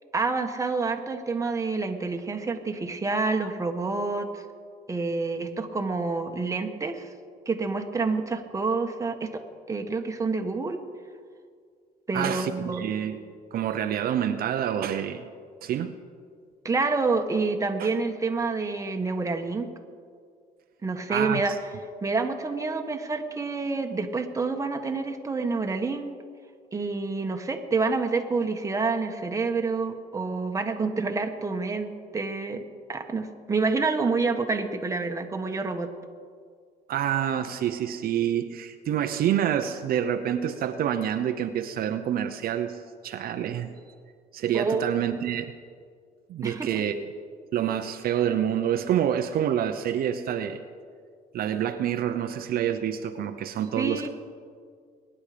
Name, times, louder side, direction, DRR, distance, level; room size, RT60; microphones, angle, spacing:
voice 1, 0.1-4.4 4.9-7.1 7.4-9.4 9.7-10.8 12.1-13.2 16.6-19.7 20.8-21.6 22.0-26.1 26.7-32.6 32.9-35.9 44.5-44.8 46.4-46.8 53.8-54.1, right 4 dB, 20° right, 4 dB, 1.4 m, -28 dB
voice 2, 12.1-13.2 13.5-15.3 15.6-15.9 17.8-17.9 21.1-21.6 36.9-42.8 43.0-43.7 44.3-45.5 46.3-47.1 47.5-50.6 51.3-54.1, right 10 dB, 60° right, 7 dB, 0.8 m, -27 dB
22.5 x 10.0 x 5.1 m, 2.1 s
cardioid pair, 110°, 17 cm